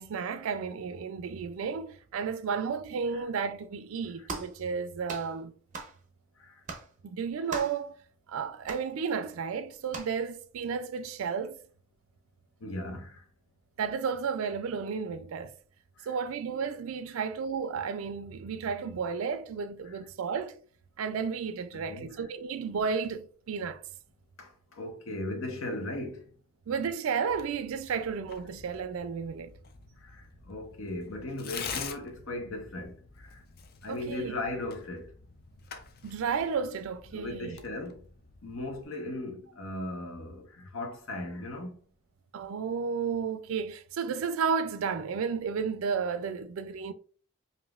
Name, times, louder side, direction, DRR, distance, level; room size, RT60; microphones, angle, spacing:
voice 1, 0.0-5.5 7.0-7.9 8.3-11.6 13.8-15.5 16.1-20.6 21.0-23.8 26.7-29.5 33.9-34.3 36.0-37.6 42.3-46.9, right 6 dB, 70° right, 0.4 m, -32 dB
sound 1, 4.3-4.6 5.1-5.3 5.7-6.0 6.7-6.9 7.5-7.8 8.7-8.9 9.9-10.2, right 4 dB, 35° right, 0.6 m, -38 dB
voice 2, 12.6-13.2 16.0-16.2 17.1-17.2 19.8-20.0 21.7-22.2 24.4-24.5 24.8-26.2 30.1-32.9 33.8-35.1 37.1-38.0 38.4-41.8, left 1 dB, 65° left, 0.9 m, -37 dB
Tearing, 27.3-38.8, left 6 dB, 45° left, 0.5 m, -46 dB
5.1 x 2.7 x 2.3 m
head